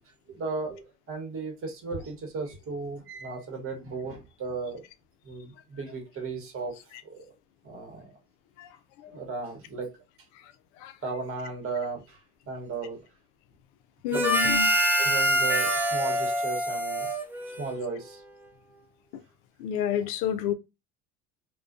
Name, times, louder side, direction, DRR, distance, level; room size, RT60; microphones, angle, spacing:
voice 1, 0.3-4.8 5.2-6.8 7.0-7.2 7.6-8.1 9.1-9.9 11.0-12.2 12.5-13.0 14.1-14.5 15.0-17.1 17.6-18.2, right 4 dB, 40° right, 1.0 m, -35 dB
voice 2, 14.0-14.7 19.6-20.5, left 9 dB, 85° left, 0.5 m, -29 dB
Harmonica, 14.1-17.9, equal, 5° right, 0.4 m, -25 dB
2.4 x 2.2 x 2.4 m
supercardioid pair, 85°, 34 cm